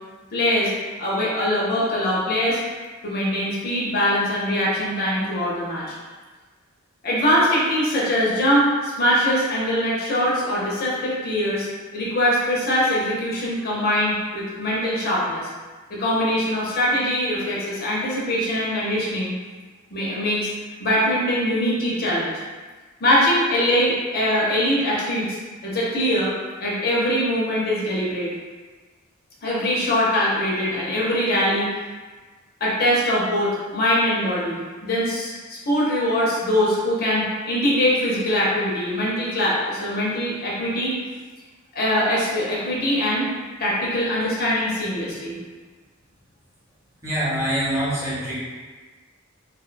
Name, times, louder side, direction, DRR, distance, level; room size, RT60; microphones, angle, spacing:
voice 1, 0.3-0.7 1.0-2.6 3.0-5.8 7.0-11.7 11.9-15.5 15.9-19.3 19.9-20.5 20.8-22.3 23.0-25.4 25.6-26.3 26.6-28.3 29.4-31.7 32.6-40.9 41.7-43.2 43.6-45.4, equal, 45° left, -6 dB, 0.6 m, -22 dB
voice 2, 47.0-48.4, equal, 15° right, -10 dB, 0.8 m, -24 dB
2.5 x 2.2 x 2.5 m, 1.4 s
head